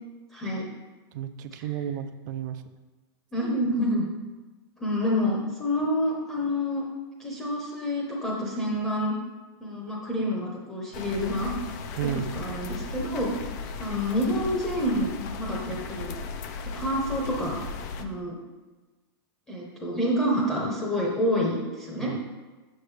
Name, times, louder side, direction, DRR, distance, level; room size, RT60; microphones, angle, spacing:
voice 1, 0.3-0.6 1.5-1.7 3.3-4.1 4.8-6.8 7.2-9.1 9.6-11.5 12.1-13.3 13.8-16.1 16.7-17.6 18.0-18.4 19.5-22.1, equal, 10° left, -4 dB, 0.8 m, -28 dB
voice 2, 1.1-2.6 12.0-12.3 22.0-22.3, right 10 dB, 45° right, 10 dB, 0.4 m, -32 dB
sound 1, 10.9-18.0, left 4 dB, 45° left, 0.5 m, -36 dB
6.5 x 6.5 x 3.3 m, 1.3 s
supercardioid pair, 165°, 14 cm